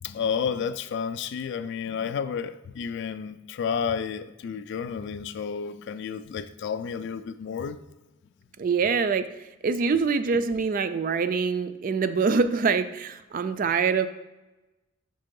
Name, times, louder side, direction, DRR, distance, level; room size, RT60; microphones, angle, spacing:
voice 1, 0.0-7.8, left 6 dB, 55° left, 0.3 m, -31 dB
voice 2, 8.6-14.1, right 5 dB, 40° right, 0.3 m, -25 dB
5.4 x 3.7 x 5.2 m
head